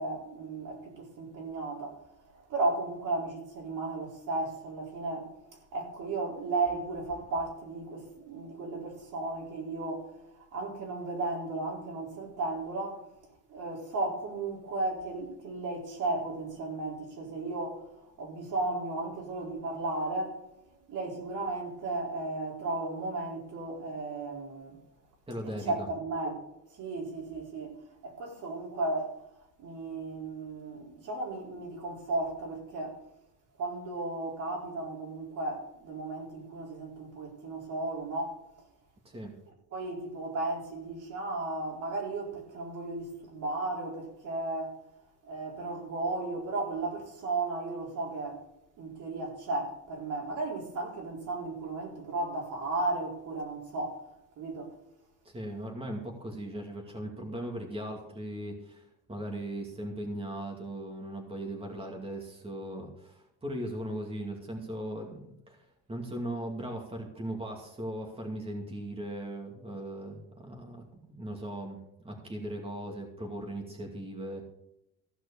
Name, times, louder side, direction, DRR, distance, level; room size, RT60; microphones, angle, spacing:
voice 1, 0.0-13.1 13.5-20.5 20.9-24.8 25.6-26.4 26.7-29.2 29.6-33.0 33.6-38.4 39.7-44.8 45.2-48.4 48.8-54.0 54.4-54.8, right 2 dB, 65° right, 4.7 m, -35 dB
voice 2, 25.3-25.9 39.0-39.4 55.2-71.8 72.0-74.4, right 1 dB, 15° right, 2.3 m, -38 dB
15.5 x 6.0 x 6.9 m
cardioid pair, 115°, 33 cm